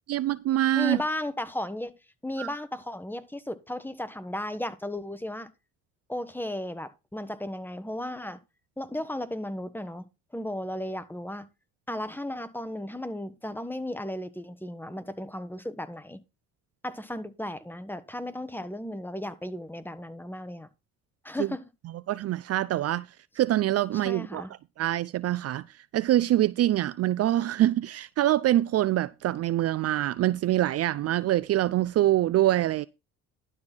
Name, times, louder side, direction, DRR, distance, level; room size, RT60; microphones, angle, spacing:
voice 1, 0.1-1.0 2.4-2.5 21.4-21.5 22.1-23.1 23.4-24.4 24.8-25.6 25.9-32.9, right 14 dB, 50° right, 0.5 m, -25 dB
voice 2, 0.7-1.9 2.2-5.5 6.1-8.4 8.8-10.1 10.3-11.5 11.9-16.2 16.8-20.7 21.2-21.6 23.9-24.5, left 1 dB, 5° left, 1.3 m, -35 dB
12.0 x 4.2 x 6.1 m
supercardioid pair, 75°, 32 cm